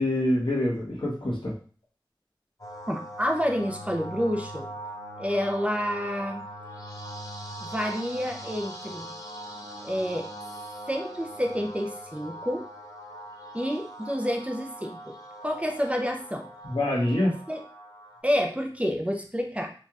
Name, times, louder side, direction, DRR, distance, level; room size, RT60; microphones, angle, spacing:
voice 1, 0.0-1.5 16.6-17.3, left 1 dB, 75° left, -4 dB, 1.3 m, -25 dB
sound 1, 2.6-18.2, right 1 dB, 45° left, 1.0 m, -41 dB
voice 2, 2.9-4.7 5.2-6.4 7.6-9.1 9.8-10.3 10.9-12.7 13.5-15.1 15.4-16.5 17.5-17.6 18.2-19.7, equal, 15° right, 2 dB, 0.6 m, -29 dB
4.5 x 3.0 x 2.4 m, 0.41 s
wide cardioid pair, 45°, 9 cm